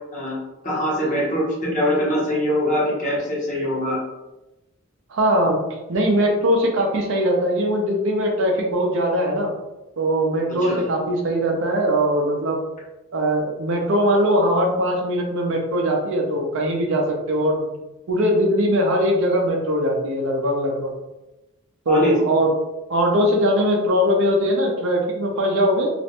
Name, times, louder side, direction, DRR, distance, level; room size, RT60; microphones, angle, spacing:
voice 1, 0.6-4.0 10.6-10.8 21.9-22.2, equal, 35° left, -5 dB, 0.8 m, -23 dB
voice 2, 5.1-5.6 5.9-9.5 10.0-12.6 13.1-17.7 18.1-21.0 21.9-22.5 22.9-25.9, equal, 60° right, 1 dB, 0.5 m, -20 dB
2.4 x 2.1 x 2.8 m, 1.0 s
head